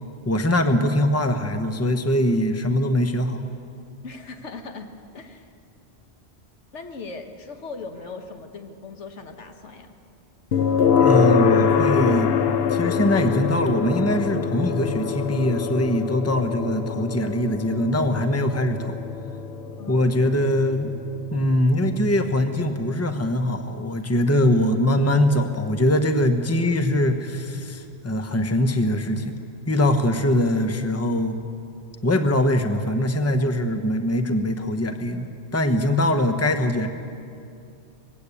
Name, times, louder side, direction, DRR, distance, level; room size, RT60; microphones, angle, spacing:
voice 1, 0.3-3.4 11.0-12.3 12.7-19.0 19.9-20.9 21.3-29.3 29.7-31.4 32.0-36.9, left 1 dB, 15° left, 7 dB, 1.0 m, -22 dB
voice 2, 4.0-4.9 5.1-5.5 6.7-9.9 19.8-20.3, left 4 dB, 80° left, 5 dB, 1.6 m, -39 dB
sound 1, 10.5-25.5, left 6 dB, 65° left, 1.0 m, -25 dB
20.5 x 16.0 x 8.5 m, 2.5 s
omnidirectional pair, 1.2 m